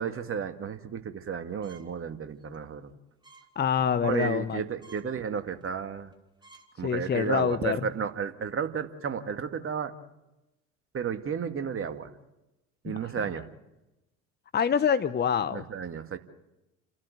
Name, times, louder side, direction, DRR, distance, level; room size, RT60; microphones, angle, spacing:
voice 1, 0.0-2.9 4.0-6.1 6.8-9.9 10.9-12.1 12.8-13.5 15.5-16.2, right 7 dB, 35° right, 8 dB, 2.1 m, -33 dB
sound 1, 1.6-2.0 2.4-2.6 3.2-3.5 3.9-4.1 4.5-4.6 4.8-5.1 5.6-5.8 6.1-6.2 6.4-6.7 7.1-7.4, right 4 dB, 10° right, 2.8 m, -54 dB
voice 2, 3.6-4.6 6.8-7.8 14.5-15.6, left 7 dB, 25° left, 14 dB, 1.0 m, -26 dB
30.0 x 13.0 x 9.4 m, 0.99 s
hypercardioid pair, 65°, 37 cm